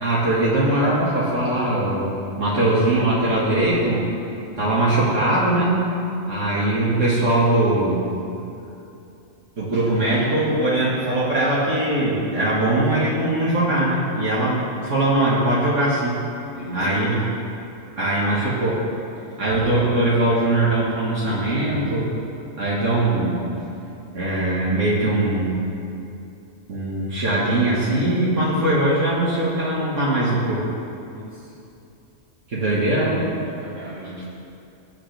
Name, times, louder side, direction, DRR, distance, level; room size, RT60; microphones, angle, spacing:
voice 1, 0.0-2.1 2.4-4.1 4.6-5.9 6.3-8.1 9.6-16.1 16.7-17.2 18.0-18.8 19.4-22.1 22.6-23.4 24.1-25.6 26.7-30.6 32.5-33.2, right 1 dB, 65° right, -8 dB, 2.3 m, -21 dB
voice 2, 16.5-17.2 31.1-31.5 32.6-33.1 33.5-34.3, right 1 dB, 30° right, -7 dB, 3.1 m, -37 dB
20.0 x 8.9 x 3.5 m, 2.7 s
omnidirectional pair, 1.4 m